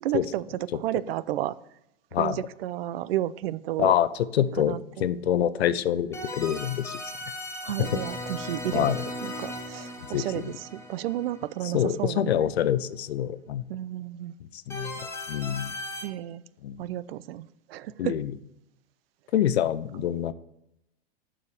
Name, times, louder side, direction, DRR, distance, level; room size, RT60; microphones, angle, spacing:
voice 1, 0.0-1.6 2.2-3.9 4.6-5.1 7.6-9.0 9.2-12.5 13.7-14.3 16.0-16.4 16.8-18.2, right 13 dB, 65° right, 18 dB, 0.5 m, -32 dB
voice 2, 4.3-7.0 7.8-8.0 8.7-9.0 10.1-10.5 11.7-13.6 14.5-14.9 15.3-15.8 16.6-16.9 18.0-18.3 19.3-20.3, left 10 dB, 85° left, 16 dB, 0.6 m, -26 dB
sound 1, 6.1-12.0 14.7-16.0, left 1 dB, 10° left, 1.3 m, -37 dB
6.9 x 5.0 x 6.8 m, 0.84 s
hypercardioid pair, 105°, 31 cm